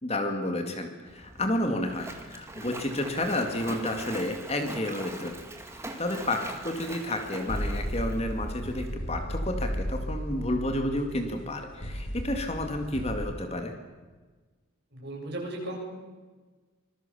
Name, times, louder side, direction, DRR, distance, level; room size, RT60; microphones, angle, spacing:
voice 1, 0.0-5.3 5.7-13.8, left 1 dB, 30° left, 4 dB, 2.2 m, -31 dB
Splash splatter, 1.1-8.9, right 2 dB, 15° right, 2.0 m, -42 dB
sound 1, 7.5-13.3, equal, 65° left, 5.5 m, -34 dB
voice 2, 14.9-15.8, right 1 dB, 50° right, -1 dB, 7.8 m, -36 dB
26.0 x 21.0 x 7.1 m, 1.3 s
head